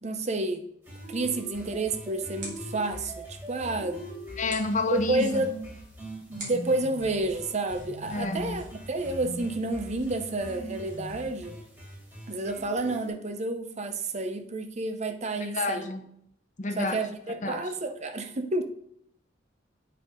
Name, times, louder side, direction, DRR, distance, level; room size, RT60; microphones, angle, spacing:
voice 1, 0.0-0.7 1.1-4.1 4.9-5.5 6.3-11.6 12.3-15.9 16.8-18.6, right 2 dB, 35° right, 7 dB, 0.7 m, -30 dB
sound 1, 0.8-13.1, equal, 10° right, 3.5 m, -42 dB
sound 2, 1.3-11.3, right 2 dB, 70° right, 3.4 m, -49 dB
voice 2, 4.4-5.5 8.1-8.5 15.4-16.1 16.6-17.0 17.4-17.6, left 3 dB, 40° left, 7 dB, 0.9 m, -29 dB
8.9 x 6.3 x 3.8 m, 0.70 s
head